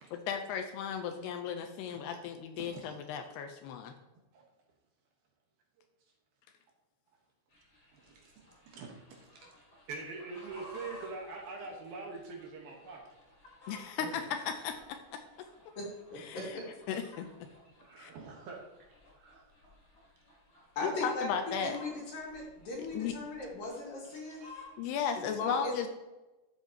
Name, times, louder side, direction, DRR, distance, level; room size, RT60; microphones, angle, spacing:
voice 1, 0.3-3.9 13.7-15.5 16.2-16.4 16.9-17.5 18.0-18.1 20.8-21.8 22.8-23.1 24.8-25.9, left 7 dB, 80° left, 6 dB, 2.6 m, -36 dB
voice 2, 2.5-3.0 4.3-4.4 5.8-5.9 7.9-9.5 9.7-13.0 17.4-18.6 18.9-19.5 19.8-19.9 24.1-24.5 25.1-25.2, right 4 dB, 65° right, 0 dB, 2.8 m, -45 dB
sound 1, 7.5-25.0, left 2 dB, 30° left, 2.4 m, -56 dB
voice 3, 15.8-16.7 20.8-24.4 25.3-25.9, left 2 dB, 60° left, -2 dB, 3.8 m, -38 dB
13.0 x 8.1 x 2.9 m, 1.1 s
omnidirectional pair, 5.0 m